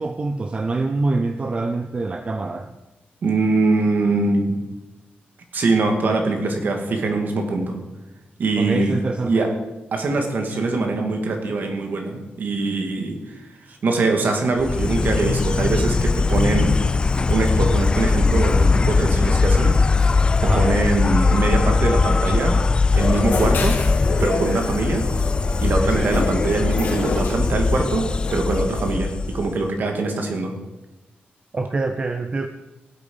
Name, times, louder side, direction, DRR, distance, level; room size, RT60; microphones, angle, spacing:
voice 1, 0.0-2.7 8.6-9.4 20.4-20.7 25.9-26.1 31.5-32.5, right 3 dB, 30° right, 7 dB, 0.6 m, -25 dB
voice 2, 3.2-4.6 5.5-7.8 8.4-8.9 9.3-9.5 9.9-16.8 17.3-19.8 20.4-22.7 23.0-23.8 24.2-25.1 25.6-30.5, right 3 dB, 55° right, 4 dB, 2.2 m, -23 dB
Insect, 14.6-29.7, left 4 dB, 25° left, 0.3 m, -20 dB
sound 1, 22.9-28.9, left 3 dB, 60° left, 2.1 m, -29 dB
17.0 x 8.4 x 5.5 m, 1.0 s
wide cardioid pair, 165°, 4 cm